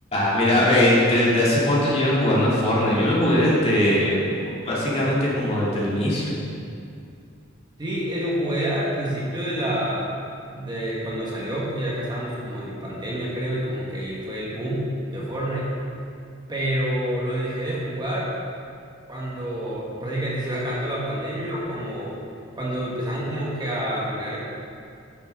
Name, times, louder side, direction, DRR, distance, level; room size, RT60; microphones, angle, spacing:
voice 1, 0.1-6.2, left 1 dB, 30° left, -7 dB, 2.8 m, -20 dB
voice 2, 7.8-10.1 10.5-15.7 16.5-18.3 19.1-22.2 22.5-24.4, right 1 dB, 20° right, -6 dB, 1.7 m, -28 dB
10.5 x 9.9 x 3.8 m, 2.4 s
head